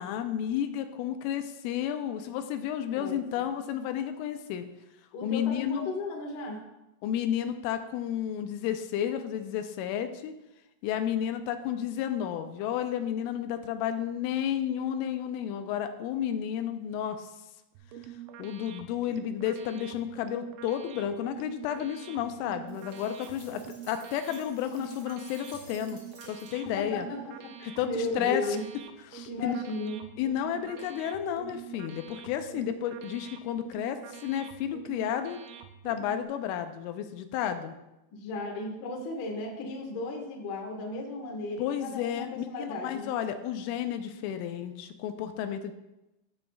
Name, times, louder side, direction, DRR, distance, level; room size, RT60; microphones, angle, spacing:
voice 1, 0.0-4.6 5.2-5.9 7.0-10.3 10.8-17.3 18.4-26.0 26.3-27.1 27.8-28.4 29.1-29.6 30.2-35.4 35.8-37.7 41.6-45.7, left 10 dB, 80° left, 7 dB, 3.0 m, -32 dB
voice 2, 5.1-6.6 26.8-27.2 27.6-28.6 29.3-30.0 38.1-43.1, left 2 dB, 60° left, 0 dB, 2.2 m, -35 dB
sound 1, 17.8-36.3, right 9 dB, 80° right, 3.0 m, -46 dB
sound 2, 22.7-26.9, right 1 dB, 35° right, 3.2 m, -54 dB
16.5 x 7.3 x 2.4 m, 0.94 s
omnidirectional pair, 6.0 m